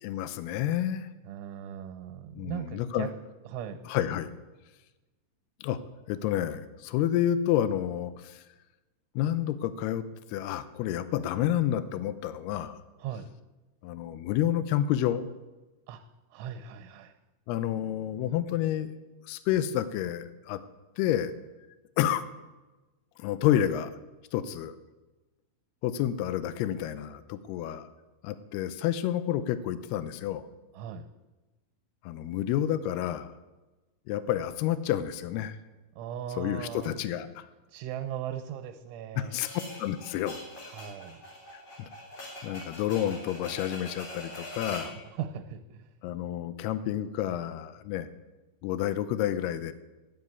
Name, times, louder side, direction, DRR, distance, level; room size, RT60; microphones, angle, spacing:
voice 1, 0.0-1.1 2.3-3.1 3.9-4.3 5.6-5.8 6.1-8.4 9.2-10.0 10.3-12.8 13.8-15.3 17.5-18.9 19.2-20.6 21.0-21.3 22.0-22.2 23.2-23.9 24.3-24.8 25.8-27.9 28.2-30.5 32.0-33.3 34.1-35.6 36.4-37.5 39.2-39.5 39.8-40.4 41.5-41.9 42.4-44.9 46.0-48.1 48.6-49.7, left 11 dB, 90° left, 13 dB, 2.3 m, -29 dB
voice 2, 1.2-3.1 3.5-3.9 13.0-13.3 15.9-16.0 16.3-17.1 30.7-31.1 36.0-36.9 37.7-39.4 40.7-41.2 44.8-45.9, right 9 dB, 85° right, 5 dB, 3.4 m, -38 dB
sound 1, 39.4-45.0, left 1 dB, 45° left, 4.7 m, -43 dB
12.0 x 9.5 x 9.6 m, 1.1 s
omnidirectional pair, 5.5 m